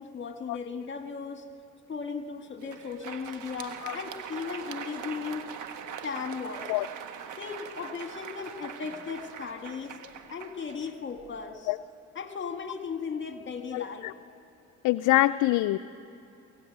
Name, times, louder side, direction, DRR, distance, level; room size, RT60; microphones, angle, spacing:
voice 1, 0.0-1.5 1.9-5.5 6.0-6.7 7.4-10.0 10.3-11.7 12.2-14.1, left 5 dB, 40° left, 6 dB, 1.7 m, -36 dB
Crowd, 2.5-11.4, right 8 dB, 80° right, 1.3 m, -42 dB
voice 2, 13.7-14.1 14.8-15.8, left 17 dB, 90° left, 9 dB, 0.5 m, -25 dB
22.5 x 16.0 x 9.3 m, 2.7 s
cardioid pair, 90°, 30 cm